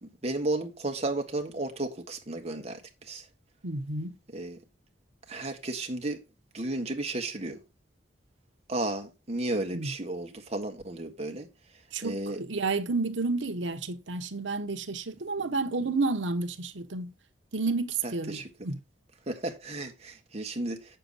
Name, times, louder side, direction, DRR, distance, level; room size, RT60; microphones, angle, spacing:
voice 1, 0.0-3.3 4.3-4.6 5.3-6.2 6.5-7.6 8.7-11.5 12.0-12.4 15.4-15.5 18.0-18.7 19.3-21.0, right 2 dB, 35° right, 1.6 m, -33 dB
voice 2, 3.6-4.1 9.7-9.9 11.9-17.1 17.5-18.8, right 3 dB, 90° right, 1.1 m, -31 dB
8.0 x 6.8 x 4.1 m
head